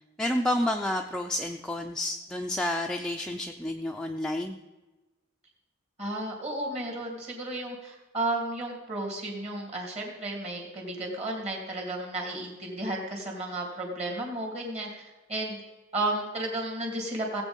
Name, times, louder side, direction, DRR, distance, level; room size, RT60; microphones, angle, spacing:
voice 1, 0.2-4.6, left 1 dB, 5° left, 2 dB, 0.5 m, -30 dB
voice 2, 6.0-15.0 15.3-15.6 15.9-17.4, right 2 dB, 35° right, 0 dB, 2.9 m, -33 dB
17.5 x 8.1 x 5.4 m, 1.2 s
head